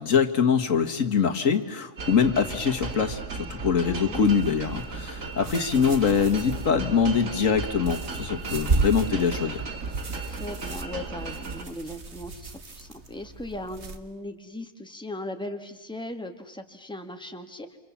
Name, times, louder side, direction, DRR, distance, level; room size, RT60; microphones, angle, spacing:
voice 1, 0.0-9.6, left 6 dB, 85° left, 6 dB, 2.0 m, -24 dB
sound 1, 2.0-11.6, right 4 dB, 90° right, 2.3 m, -35 dB
voice 2, 3.8-4.3 10.3-17.8, left 1 dB, 5° left, 5 dB, 1.9 m, -38 dB
sound 2, 4.2-14.0, right 3 dB, 60° right, 2.0 m, -34 dB
29.0 x 27.0 x 7.3 m, 1.0 s
omnidirectional pair, 1.3 m